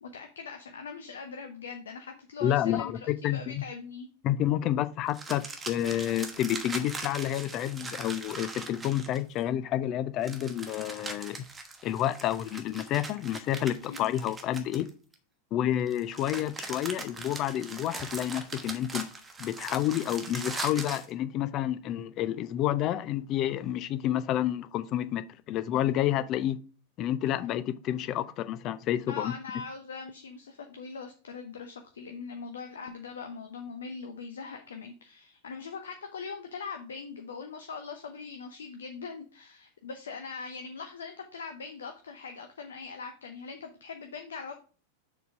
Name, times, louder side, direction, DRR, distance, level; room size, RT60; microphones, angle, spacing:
voice 1, 0.0-4.1 13.9-14.1 29.1-44.5, left 5 dB, 65° left, 0.7 m, -41 dB
voice 2, 2.4-3.6 4.2-11.4 11.8-14.9 15.5-19.0 19.4-26.6 27.0-29.3, left 12 dB, 35° left, 0.5 m, -29 dB
sound 1, 5.1-9.4 10.2-15.1 15.9-21.1, right 3 dB, 15° right, 1.1 m, -40 dB
7.0 x 4.0 x 4.6 m
figure-of-eight pair, 90°, 0 cm